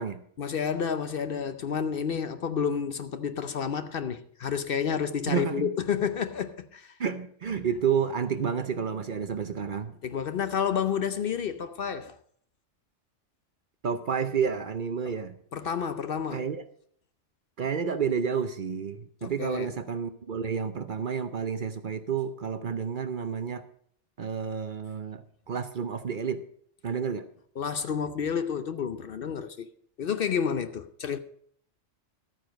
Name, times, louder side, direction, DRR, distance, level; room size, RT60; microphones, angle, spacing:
voice 1, 0.4-7.0 10.0-12.2 15.0-15.2 15.5-16.5 19.2-19.7 27.6-29.7 30.0-31.2, left 7 dB, 55° left, 0.8 m, -30 dB
voice 2, 5.3-5.7 7.0-9.9 13.8-15.3 16.3-16.6 17.6-23.6 24.2-26.4 26.8-27.3, right 6 dB, 50° right, 0.8 m, -30 dB
12.5 x 9.2 x 5.2 m
omnidirectional pair, 1.2 m